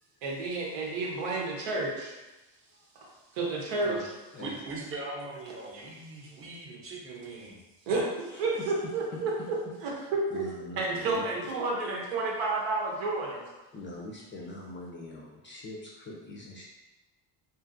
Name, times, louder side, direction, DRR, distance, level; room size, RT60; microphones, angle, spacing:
voice 1, 0.2-2.1 3.0-4.0 5.7-5.9 7.9-9.6 9.8-10.5 10.8-13.4, right 3 dB, 80° right, -2 dB, 0.9 m, -31 dB
voice 2, 4.4-7.6, right 2 dB, 30° right, -2 dB, 0.8 m, -40 dB
voice 3, 8.3-8.6 10.3-11.2 13.7-16.6, left 2 dB, 25° left, -3 dB, 0.4 m, -43 dB
2.6 x 2.4 x 2.5 m, 1.1 s
supercardioid pair, 85°, 47 cm